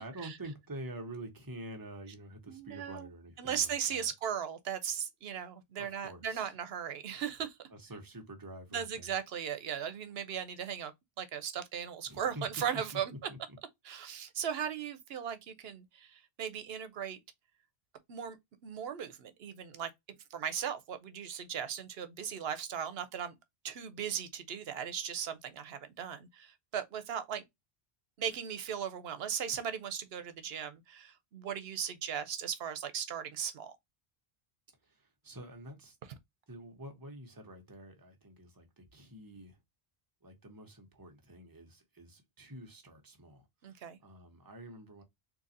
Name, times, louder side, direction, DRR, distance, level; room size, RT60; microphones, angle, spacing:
voice 1, 0.0-4.1 5.7-6.6 7.7-9.2 12.1-13.6 34.8-36.0 36.5-39.6 40.2-45.0, right 1 dB, 20° right, 1.0 m, -47 dB
voice 2, 2.5-3.1 3.4-7.5 8.7-10.9 11.2-13.1 13.8-17.2 18.1-18.4 18.6-19.9 20.3-23.3 23.6-27.4 28.2-33.7 43.6-44.0, right 8 dB, 80° right, 0.9 m, -37 dB
3.9 x 2.8 x 2.6 m
omnidirectional pair, 1.0 m